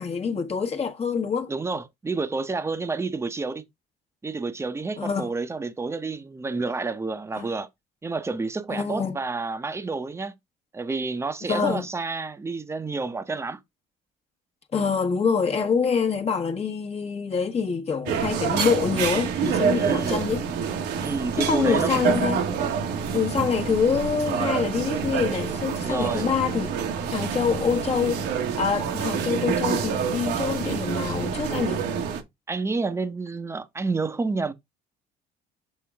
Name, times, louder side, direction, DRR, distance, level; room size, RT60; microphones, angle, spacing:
voice 1, 0.0-1.5 5.0-5.3 7.4-7.5 8.7-9.1 11.5-11.8 14.7-20.4 21.4-22.4 23.1-26.7 27.1-28.3 28.6-31.8, left 6 dB, 35° left, 1.3 m, -25 dB
voice 2, 1.5-3.6 4.2-7.7 8.0-10.3 10.7-13.6 19.7-20.2 21.0-22.1 25.8-26.3 32.5-34.5, right 3 dB, 15° right, 0.9 m, -29 dB
sound 1, 18.1-32.2, right 7 dB, 80° right, 1.5 m, -27 dB
7.7 x 3.7 x 3.5 m
cardioid pair, 110°, 17 cm